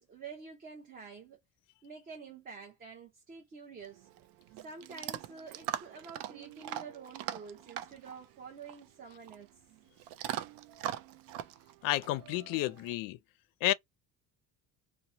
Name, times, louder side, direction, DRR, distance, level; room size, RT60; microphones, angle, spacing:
voice 1, 0.0-1.4 1.8-4.1 4.6-9.6, right 5 dB, 25° right, 0.7 m, -48 dB
Chewing mastication / Dog, 3.8-12.9, right 11 dB, 80° right, 0.5 m, -42 dB
voice 2, 11.8-13.2 13.6-13.7, left 16 dB, 75° left, 0.5 m, -31 dB
2.9 x 2.1 x 2.6 m
cardioid pair, 175°, 34 cm